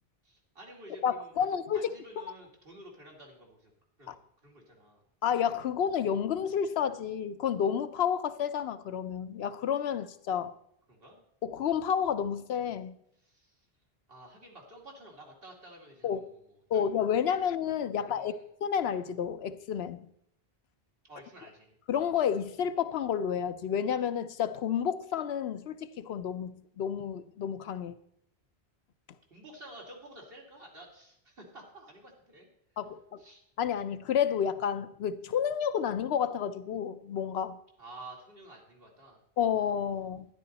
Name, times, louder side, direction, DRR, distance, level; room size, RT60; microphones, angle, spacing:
voice 1, 0.2-1.5 1.7-3.7 4.0-5.0 10.9-11.2 13.2-13.7 14.1-16.8 17.9-18.4 21.0-21.7 29.3-32.5 33.2-33.4 37.8-39.2, right 1 dB, 65° right, 2.6 m, -51 dB
voice 2, 1.0-1.9 2.2-2.3 4.1-4.2 5.2-10.5 11.4-12.9 16.0-16.2 16.7-20.1 21.9-28.0 32.8-33.2 33.6-37.6 39.4-40.3, left 8 dB, 85° left, 0.9 m, -30 dB
12.5 x 10.5 x 4.1 m
omnidirectional pair, 1.0 m